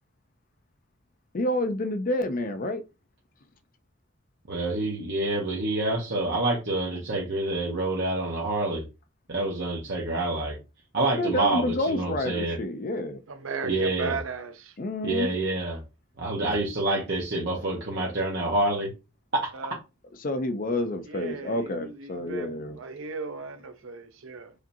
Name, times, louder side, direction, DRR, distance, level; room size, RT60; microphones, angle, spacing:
voice 1, 1.3-2.8 11.2-13.2 14.8-15.3 20.2-22.8, left 1 dB, 45° left, 0.5 m, -28 dB
voice 2, 4.5-8.8 9.3-10.6 10.9-12.6 13.6-14.2 15.0-15.8 16.2-18.9 19.3-19.5, right 2 dB, 60° right, 1.0 m, -27 dB
voice 3, 13.3-14.8 19.5-19.8 21.0-24.5, right 4 dB, 85° right, 0.6 m, -36 dB
5.0 x 2.8 x 2.7 m
head